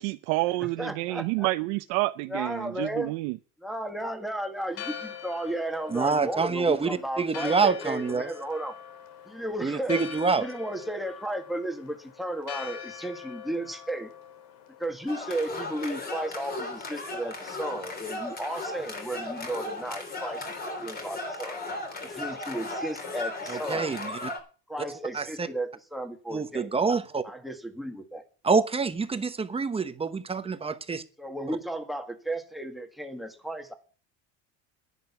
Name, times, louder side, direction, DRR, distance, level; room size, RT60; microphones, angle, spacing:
voice 1, 0.0-3.4, right 21 dB, 75° right, 0.7 m, -29 dB
voice 2, 0.6-1.5 2.3-3.1 3.6-8.8 9.3-14.1 14.8-20.5 20.8-21.6 22.0-23.9 24.7-26.7 27.2-28.3 31.2-33.7, right 1 dB, ahead, 1.7 m, -34 dB
Church bell, 4.6-16.1, left 8 dB, 75° left, 2.3 m, -43 dB
voice 3, 5.9-8.3 9.6-10.4 23.7-24.0 25.1-25.2 26.3-27.2 28.4-31.0, right 5 dB, 15° right, 1.0 m, -26 dB
sound 1, 15.1-24.4, left 2 dB, 25° left, 3.3 m, -36 dB
10.5 x 10.5 x 5.9 m
cardioid pair, 130°, 35 cm